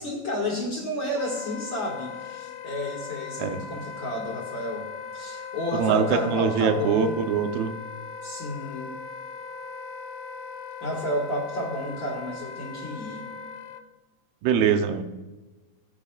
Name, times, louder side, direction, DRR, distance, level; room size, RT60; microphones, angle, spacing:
voice 1, 0.0-4.9 5.1-7.1 8.2-8.9 10.8-13.3, left 1 dB, 40° left, -2 dB, 1.9 m, -31 dB
Wind instrument woodwind instrument, 1.2-13.8, left 5 dB, 90° left, 2.5 m, -39 dB
voice 2, 5.7-7.7 14.4-15.0, right 6 dB, 90° right, 7 dB, 2.8 m, -23 dB
19.0 x 9.7 x 2.4 m, 1.2 s
omnidirectional pair, 4.3 m